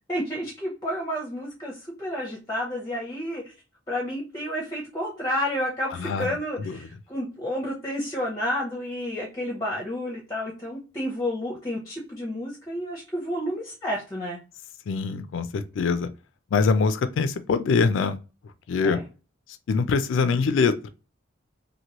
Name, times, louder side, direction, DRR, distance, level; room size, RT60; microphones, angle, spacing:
voice 1, 0.1-3.5 3.9-14.4 18.8-19.0, equal, 15° left, 0.7 m, -30 dB
voice 2, 14.9-16.1 16.5-18.2 18.7-19.0 19.7-20.9, left 5 dB, 70° left, 0.3 m, -23 dB
2.9 x 2.6 x 2.9 m
head